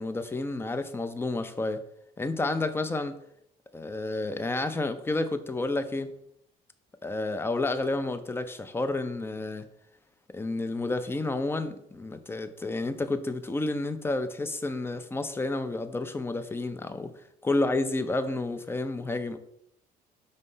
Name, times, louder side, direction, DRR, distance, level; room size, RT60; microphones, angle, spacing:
voice 1, 0.0-1.8 2.2-3.2 3.7-6.1 7.0-9.6 10.3-17.1 17.4-19.4, left 2 dB, 15° left, 10 dB, 0.5 m, -30 dB
5.3 x 3.2 x 5.5 m, 0.74 s
cardioid pair, 110°, 17 cm